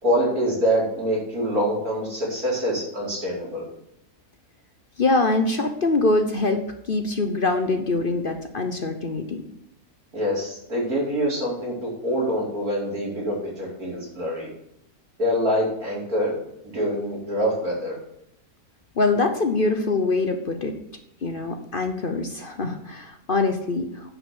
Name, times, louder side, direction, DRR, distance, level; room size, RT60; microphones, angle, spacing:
voice 1, 0.0-3.6 10.1-14.5 15.2-16.4 16.6-18.0, equal, 75° right, -5 dB, 5.1 m, -25 dB
voice 2, 5.0-9.4 19.0-20.8 21.2-24.2, left 3 dB, 40° left, 6 dB, 1.0 m, -24 dB
9.8 x 6.1 x 7.0 m, 0.78 s
omnidirectional pair, 1.6 m